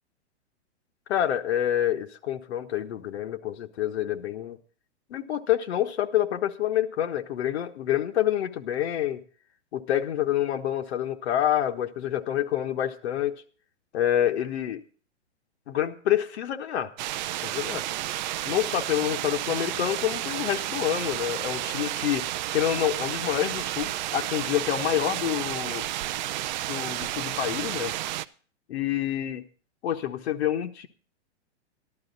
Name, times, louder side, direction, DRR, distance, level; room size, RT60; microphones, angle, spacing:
voice 1, 1.1-4.6 5.1-9.2 9.7-13.4 13.9-14.8 15.7-16.9 17.4-17.9 18.4-25.9 26.7-27.9 28.7-29.4 29.8-30.9, left 11 dB, 65° left, 6 dB, 1.4 m, -27 dB
sound 1, 17.0-28.2, right 14 dB, 40° right, 0.5 m, -31 dB
14.0 x 12.0 x 4.0 m, 0.41 s
hypercardioid pair, 140°, 35 cm